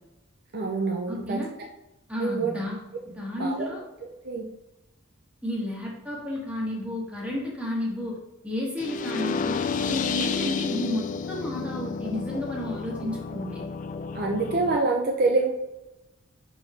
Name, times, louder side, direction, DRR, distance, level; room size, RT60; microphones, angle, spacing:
voice 1, 0.5-1.4 2.2-2.5 3.4-3.7 4.0-4.4 14.1-15.5, right 3 dB, 45° right, 2 dB, 0.6 m, -26 dB
voice 2, 1.1-1.5 2.1-2.8 3.0-3.8 5.4-8.2 8.4-13.6, left 1 dB, 5° right, -4 dB, 1.7 m, -32 dB
sound 1, 8.8-14.8, left 5 dB, 40° left, 0.3 m, -31 dB
4.6 x 4.4 x 5.5 m, 0.96 s
head